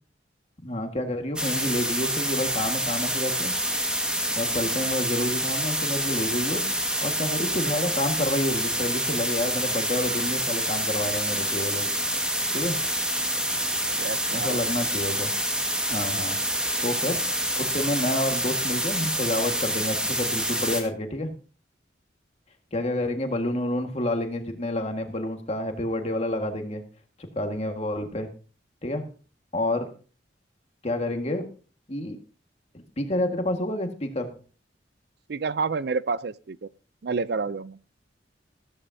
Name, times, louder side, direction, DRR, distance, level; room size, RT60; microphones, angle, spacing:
voice 1, 0.6-3.5 4.4-6.6 7.0-11.9 12.5-12.8 14.3-15.3 15.9-16.4 16.8-17.2 17.6-21.3 22.7-26.8 27.2-28.3 28.8-29.1 29.5-29.9 30.8-31.5 31.9-32.2 32.7-34.3, left 1 dB, 35° left, 1.7 m, -29 dB
sound 1, 1.4-20.8, right 1 dB, 5° right, 1.7 m, -27 dB
voice 2, 14.0-14.6 35.3-36.7 37.0-37.8, right 4 dB, 60° right, 0.5 m, -29 dB
14.0 x 13.5 x 2.7 m
head